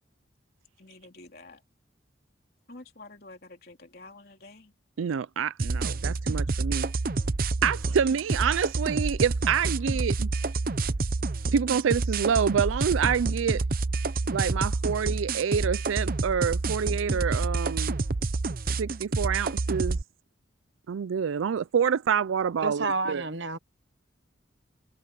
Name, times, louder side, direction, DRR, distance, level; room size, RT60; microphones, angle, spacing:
voice 1, 0.8-1.6 2.7-4.7, left 2 dB, 50° left, 3.4 m, -48 dB
voice 2, 5.0-6.9 7.6-10.3 11.5-13.6 14.3-18.0 18.8-20.0 20.9-23.2, right 7 dB, 85° right, 0.4 m, -27 dB
sound 1, 5.6-20.0, right 3 dB, 45° right, 0.7 m, -28 dB
voice 3, 22.6-23.6, right 3 dB, 65° right, 1.1 m, -29 dB
head